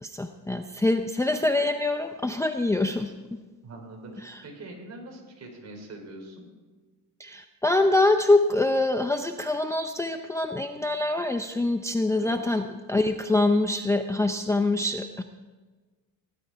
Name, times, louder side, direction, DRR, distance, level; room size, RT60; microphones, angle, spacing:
voice 1, 0.0-3.4 4.2-4.4 7.2-15.2, left 2 dB, 10° left, 6 dB, 0.6 m, -25 dB
voice 2, 3.6-6.5 12.2-12.6, right 2 dB, 45° right, 2 dB, 3.9 m, -43 dB
18.0 x 11.5 x 4.6 m, 1.3 s
cardioid pair, 120°, 38 cm